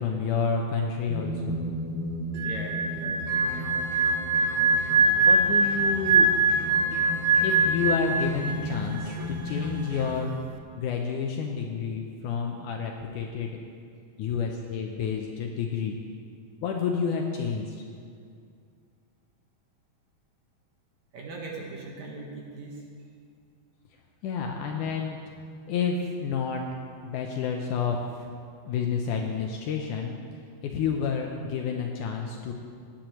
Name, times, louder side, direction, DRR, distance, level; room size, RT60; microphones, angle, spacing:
voice 1, 0.0-1.6 5.3-6.4 7.4-10.3 10.8-13.6 14.2-16.0 16.6-17.8 24.2-25.2 25.7-26.6 27.0-28.3 28.7-30.1 30.6-32.5, left 6 dB, 80° left, 2 dB, 1.9 m, -29 dB
sound 1, 1.1-9.9, equal, 10° right, 0.6 m, -36 dB
sound 2, 2.3-8.7 9.0-9.3, right 3 dB, 90° right, 1.7 m, -23 dB
voice 2, 2.4-3.2 21.1-22.8, right 3 dB, 60° right, -2 dB, 2.3 m, -39 dB
sound 3, 3.3-10.1, left 1 dB, 45° right, 2.4 m, -41 dB
18.0 x 10.0 x 3.0 m, 2.3 s
omnidirectional pair, 4.2 m